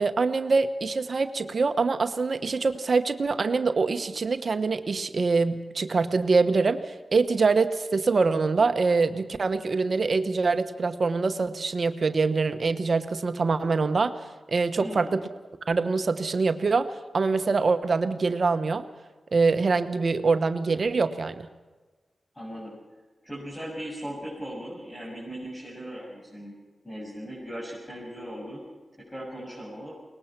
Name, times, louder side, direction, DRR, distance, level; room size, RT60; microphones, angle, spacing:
voice 1, 0.0-6.8 7.1-14.2 14.5-15.2 15.7-16.9 17.1-18.8 19.3-21.5, right 4 dB, 60° right, 10 dB, 1.0 m, -24 dB
voice 2, 14.8-15.2 22.3-22.7 23.2-26.5 26.8-28.6 29.0-29.9, equal, 20° left, -5 dB, 7.2 m, -38 dB
22.5 x 20.0 x 6.0 m, 1.3 s
cardioid pair, 55°, 0 cm